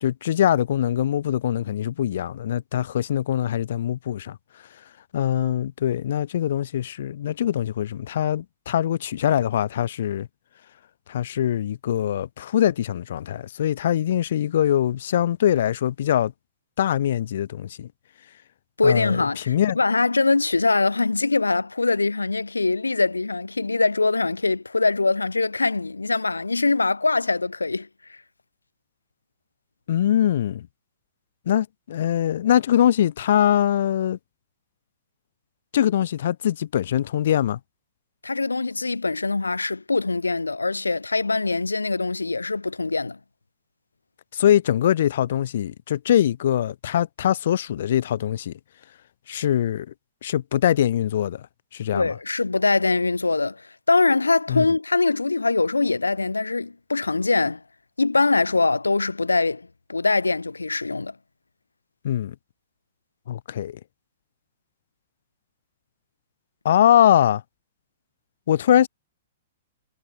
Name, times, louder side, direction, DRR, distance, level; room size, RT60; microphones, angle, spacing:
voice 1, 0.0-4.4 5.1-10.3 11.1-16.3 16.8-17.9 18.8-19.8 29.9-30.7 31.5-34.2 35.7-37.6 44.3-48.5 49.3-49.9 50.2-51.5 51.7-52.1 54.5-54.7 62.0-62.3 63.3-63.8 66.6-67.4 68.5-68.9, left 10 dB, 55° left, 1.2 m, -22 dB
voice 2, 18.8-28.2 38.2-43.2 51.9-57.6 58.0-61.1, left 3 dB, 80° left, 1.5 m, -23 dB
figure-of-eight pair, 110°, 0 cm